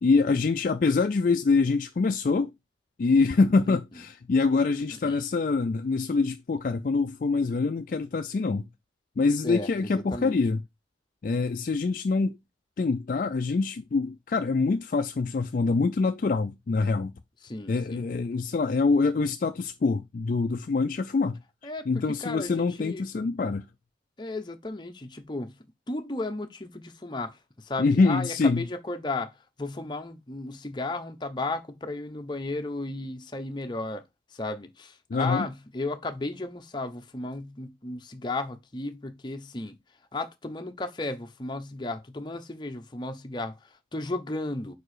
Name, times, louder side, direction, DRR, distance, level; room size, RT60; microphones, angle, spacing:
voice 1, 0.0-2.5 3.0-8.6 9.2-10.6 11.2-12.4 12.8-17.1 17.7-21.4 21.9-23.7 27.8-28.6 35.1-35.5, left 4 dB, 45° left, 0.3 m, -25 dB
voice 2, 4.9-5.2 9.4-10.4 17.4-18.0 21.6-21.9 22.2-23.0 24.2-25.5 25.9-34.0 34.3-39.8 40.1-44.8, left 2 dB, 25° left, 0.7 m, -34 dB
4.8 x 4.6 x 4.8 m
head